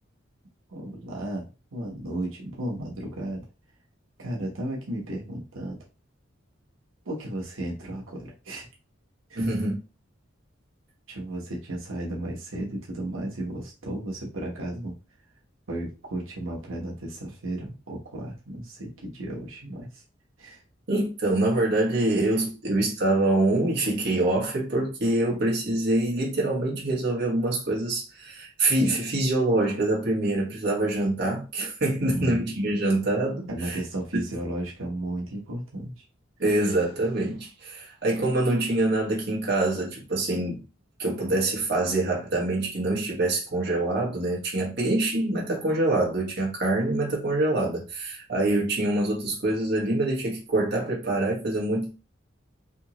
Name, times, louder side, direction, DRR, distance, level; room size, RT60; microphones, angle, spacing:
voice 1, 0.7-3.5 4.2-5.8 7.0-8.7 9.3-9.4 11.1-15.0 15.7-20.0 20.4-20.6 32.0-32.6 33.4-36.0, right 1 dB, 90° right, 1.1 m, -34 dB
voice 2, 9.3-9.8 20.9-33.8 34.1-34.2 36.4-40.6 41.0-51.9, right 2 dB, 55° right, 1.2 m, -25 dB
3.5 x 2.8 x 2.9 m
head